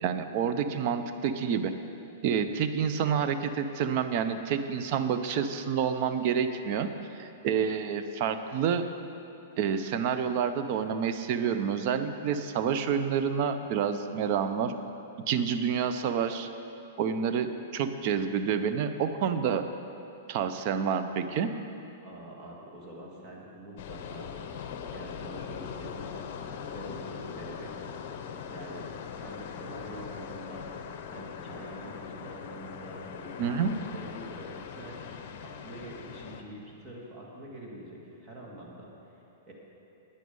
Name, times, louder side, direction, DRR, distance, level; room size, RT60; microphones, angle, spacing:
voice 1, 0.0-1.7 2.2-6.9 7.2-8.9 9.6-14.7 15.3-16.5 17.0-19.6 20.3-21.5 33.4-33.8, right 7 dB, 45° right, 9 dB, 0.7 m, -28 dB
voice 2, 22.0-24.3 24.9-26.3 26.7-27.7 28.5-28.9 29.2-30.7 31.1-38.9 39.5-39.6, right 1 dB, 20° right, -4 dB, 2.3 m, -45 dB
sound 1, 23.8-36.4, left 7 dB, 50° left, 0.8 m, -41 dB
9.9 x 9.4 x 5.4 m, 2.9 s
hypercardioid pair, 145°, 0 cm